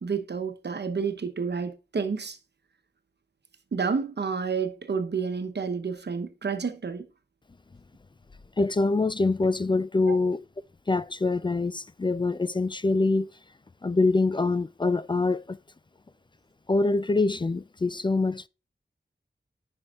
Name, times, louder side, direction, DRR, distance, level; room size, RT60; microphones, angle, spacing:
voice 1, 0.0-2.4 3.7-7.0 10.1-10.2, right 5 dB, 75° right, 0.9 m, -30 dB
voice 2, 8.6-10.4 10.9-13.3 13.8-15.6 16.7-18.5, left 3 dB, 25° left, 0.3 m, -24 dB
9.7 x 5.5 x 2.4 m
wide cardioid pair, 65°, 18 cm